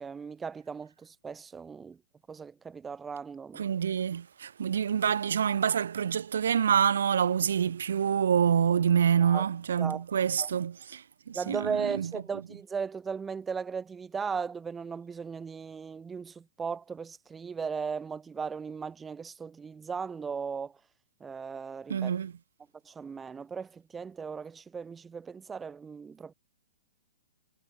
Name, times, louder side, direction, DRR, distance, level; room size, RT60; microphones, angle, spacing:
voice 1, 0.0-2.0 2.3-3.6 9.2-9.4 9.8-10.0 10.4-10.5 11.3-20.8 21.2-22.1 22.8-26.3, right 5 dB, 10° right, 1.2 m, -37 dB
voice 2, 3.5-12.1 21.9-22.3, right 8 dB, 80° right, 1.6 m, -27 dB
hypercardioid pair, 170°, 0 cm